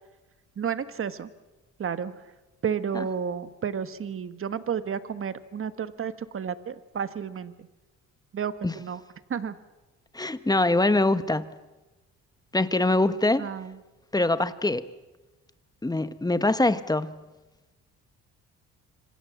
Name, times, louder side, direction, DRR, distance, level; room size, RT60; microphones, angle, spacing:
voice 1, 0.6-1.3 1.8-2.2 2.6-7.7 8.3-9.0 9.3-9.6 13.4-13.8, right 7 dB, 45° right, 1.6 m, -31 dB
voice 2, 10.1-11.6 12.5-13.5 14.1-14.8 15.8-17.2, left 2 dB, 15° left, 1.3 m, -23 dB
26.0 x 26.0 x 7.3 m
cardioid pair, 90°, 30 cm